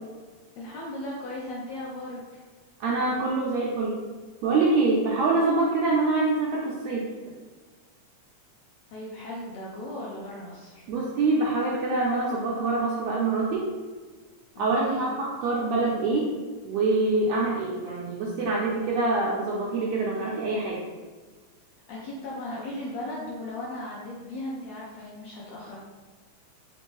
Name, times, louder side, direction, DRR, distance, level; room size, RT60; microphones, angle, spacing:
voice 1, 0.6-2.4 8.9-10.8 14.5-15.1 21.9-25.8, left 1 dB, 80° left, -4 dB, 1.6 m, -37 dB
voice 2, 2.8-4.0 4.4-7.1 10.9-13.7 14.6-16.3 16.6-20.8, right 3 dB, 80° right, -4 dB, 1.6 m, -25 dB
5.1 x 2.6 x 3.1 m, 1.4 s
omnidirectional pair, 3.6 m